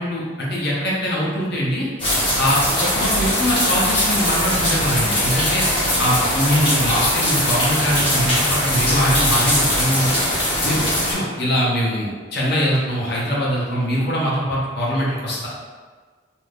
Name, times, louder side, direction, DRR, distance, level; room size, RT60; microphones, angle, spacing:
voice 1, 0.0-1.9 2.4-5.7 6.0-10.2 10.6-15.5, equal, 55° left, -5 dB, 0.8 m, -22 dB
sound 1, 2.0-11.1, left 1 dB, 25° left, 1.0 m, -20 dB
2.7 x 2.6 x 3.4 m, 1.5 s
head